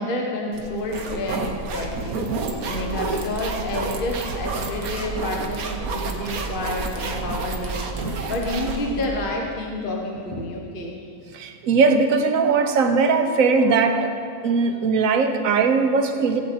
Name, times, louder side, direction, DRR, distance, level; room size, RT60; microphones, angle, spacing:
voice 1, 0.0-2.2 2.7-11.1, left 2 dB, 40° left, 0 dB, 1.3 m, -29 dB
sound 1, 0.5-9.3, right 3 dB, 90° right, 1.5 m, -29 dB
voice 2, 5.8-6.3 6.6-6.7 11.3-14.2 14.4-16.4, right 4 dB, 70° right, 7 dB, 1.3 m, -20 dB
16.5 x 8.2 x 4.3 m, 2.5 s
omnidirectional pair, 1.5 m